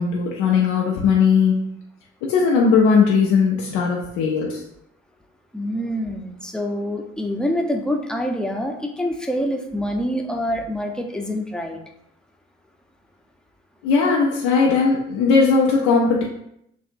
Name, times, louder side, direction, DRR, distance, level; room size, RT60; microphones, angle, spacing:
voice 1, 0.0-1.7 2.2-4.6 13.8-16.2, left 5 dB, 75° left, -2 dB, 0.7 m, -18 dB
voice 2, 5.5-11.8, equal, ahead, 2 dB, 0.9 m, -26 dB
6.8 x 2.6 x 2.6 m, 0.76 s
hypercardioid pair, 40°, 30 cm